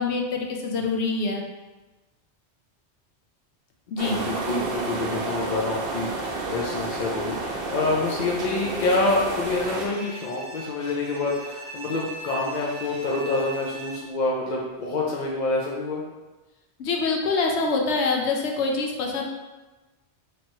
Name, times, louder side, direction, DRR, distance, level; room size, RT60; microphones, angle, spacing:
voice 1, 0.0-1.4 3.9-4.2 16.8-19.2, left 4 dB, 80° left, 1 dB, 0.9 m, -25 dB
sound 1, 4.0-9.9, right 3 dB, 60° right, 0.8 m, -30 dB
voice 2, 4.1-16.0, left 2 dB, 50° left, -3 dB, 0.6 m, -27 dB
Bowed string instrument, 9.7-14.3, right 3 dB, 5° left, 1.0 m, -39 dB
3.1 x 2.9 x 4.3 m, 1.2 s
omnidirectional pair, 1.1 m